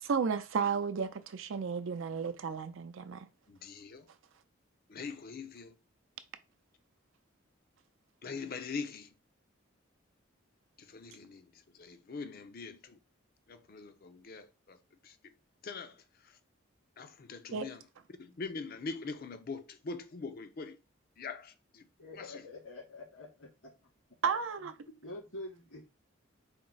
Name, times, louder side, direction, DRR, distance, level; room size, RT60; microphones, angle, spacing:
voice 1, 0.0-3.3 17.5-17.7 24.2-24.7, right 6 dB, 75° right, 0.5 m, -33 dB
voice 2, 3.5-4.1 4.9-5.7 8.2-9.1 10.8-11.5 11.7-13.0 13.5-14.8 15.0-15.1 15.6-15.9 17.0-17.8 18.2-20.8 21.2-21.8 22.2-22.4, left 4 dB, 50° left, 0.5 m, -42 dB
voice 3, 22.0-23.7 25.0-25.9, left 2 dB, 80° left, 2.4 m, -46 dB
4.3 x 2.0 x 3.8 m
head